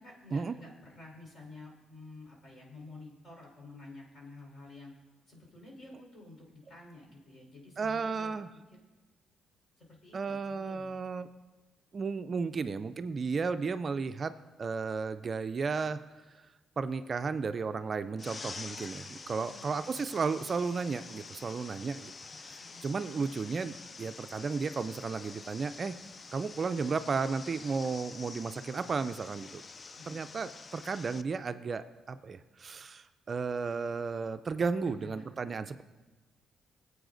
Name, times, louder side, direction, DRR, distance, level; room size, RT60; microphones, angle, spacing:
voice 1, 0.0-4.9 5.3-8.3 9.8-10.9 19.3-20.1 22.3-22.8 29.9-30.3 34.8-35.3, left 2 dB, 50° left, -1 dB, 4.2 m, -51 dB
voice 2, 7.8-8.5 10.1-11.3 11.9-14.3 14.6-16.0 16.8-22.1 22.4-26.0 26.3-29.6 30.1-35.8, right 4 dB, 40° right, 10 dB, 0.4 m, -34 dB
sound 1, 18.2-31.2, left 4 dB, 35° left, 0.3 m, -47 dB
19.5 x 8.1 x 2.6 m, 1.2 s
cardioid pair, 90°, 0 cm